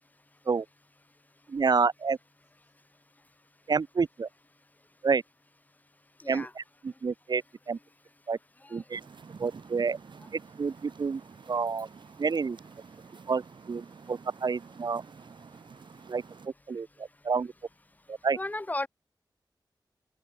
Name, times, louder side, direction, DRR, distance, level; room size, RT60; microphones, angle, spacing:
voice 1, 1.5-2.2 3.7-4.3 5.0-5.2 6.3-7.8 8.3-8.4 8.7-9.0 9.4-10.0 10.3-11.2 11.5-11.9 12.2-12.6 13.3-15.0 16.1-16.2 16.7-17.5 18.1-18.4, right 5 dB, 60° right, 0.7 m, -29 dB
sound 1, 8.9-16.5, right 5 dB, 80° right, 6.7 m, -50 dB
voice 2, 18.3-18.9, left 2 dB, 20° left, 0.7 m, -34 dB
wide cardioid pair, 90°, 8 cm